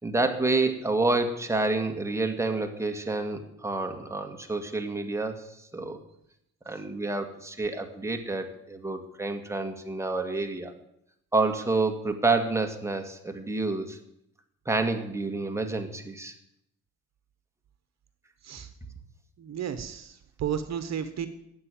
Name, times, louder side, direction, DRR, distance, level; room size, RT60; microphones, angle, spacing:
voice 1, 0.0-6.0 6.7-10.7 11.3-14.0 14.7-16.3, right 3 dB, 10° right, 5 dB, 1.9 m, -28 dB
voice 2, 19.4-21.3, right 8 dB, 60° right, 11 dB, 1.2 m, -33 dB
12.0 x 8.1 x 9.1 m, 0.78 s
cardioid pair, 90°, 30 cm